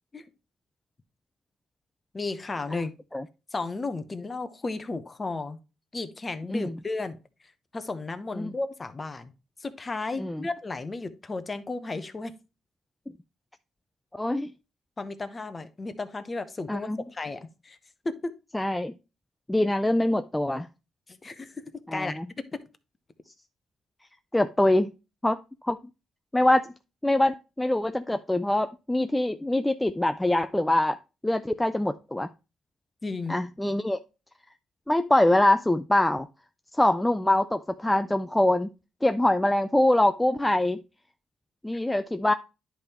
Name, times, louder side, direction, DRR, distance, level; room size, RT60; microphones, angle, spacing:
voice 1, 2.1-2.9 3.5-5.6 5.9-7.2 7.7-9.3 9.6-12.3 15.0-17.8 18.0-18.3 21.1-21.6 21.9-22.2 22.5-22.6 33.0-33.4, left 3 dB, 25° left, 1.0 m, -34 dB
voice 2, 14.1-14.5 16.7-17.0 18.5-18.9 19.5-20.7 21.9-22.3 24.3-24.9 25.2-25.4 25.6-25.8 26.3-26.7 27.0-31.0 31.2-32.3 33.3-34.0 34.9-36.3 36.8-38.7 39.0-40.8 41.6-42.3, left 1 dB, 10° left, 0.4 m, -24 dB
10.5 x 3.5 x 4.3 m
cardioid pair, 90°, 0 cm